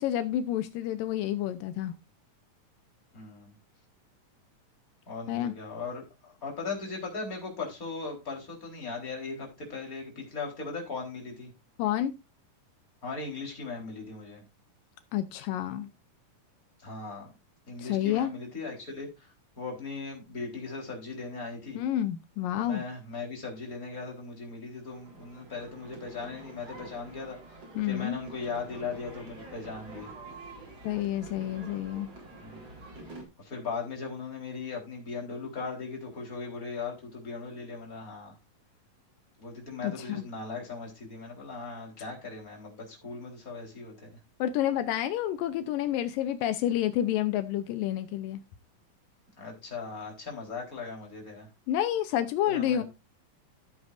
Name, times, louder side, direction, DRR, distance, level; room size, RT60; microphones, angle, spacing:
voice 1, 0.0-2.0 5.3-5.5 11.8-12.1 15.1-15.9 17.8-18.3 21.8-22.8 27.8-28.2 30.8-32.1 39.8-40.2 44.4-48.4 51.7-52.8, left 11 dB, 80° left, 2.5 m, -29 dB
voice 2, 3.1-3.5 5.1-11.5 13.0-14.4 16.8-17.3 17.7-19.3 19.6-21.8 22.5-30.1 32.4-32.6 33.4-38.4 39.4-44.1 49.4-51.5 52.4-52.8, left 4 dB, 25° left, 4.2 m, -38 dB
sound 1, 24.8-33.2, right 2 dB, 45° right, 5.0 m, -47 dB
15.0 x 8.1 x 2.6 m
omnidirectional pair, 3.9 m